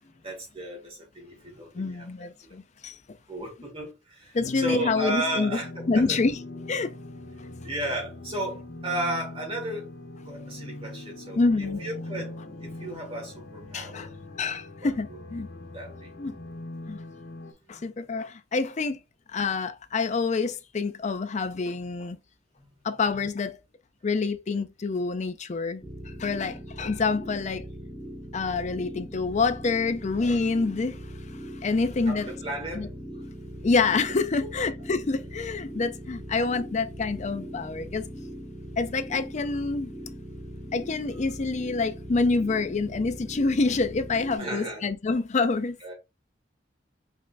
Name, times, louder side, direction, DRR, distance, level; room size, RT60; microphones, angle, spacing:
voice 1, 0.2-2.5 3.3-6.2 7.6-9.9 10.3-14.1 14.8-15.2 15.7-16.1 17.7-17.8 32.1-32.9 44.4-44.8 45.8-45.9, right 1 dB, 30° right, 1.9 m, -34 dB
voice 2, 1.7-3.0 4.3-5.6 5.9-6.4 6.7-6.9 11.4-11.8 13.7-14.1 14.4-15.5 16.2-16.4 16.9-17.0 17.7-19.0 19.3-22.2 22.8-23.6 24.0-25.8 26.2-27.7 28.3-31.0 31.6-32.3 32.8-32.9 33.6-38.1 38.8-39.9 40.7-45.8, left 4 dB, 40° left, 0.5 m, -27 dB
sound 1, 4.4-17.5, left 2 dB, 70° left, 1.4 m, -41 dB
sound 2, 25.8-44.4, equal, 15° left, 1.2 m, -40 dB
5.3 x 3.6 x 2.6 m
head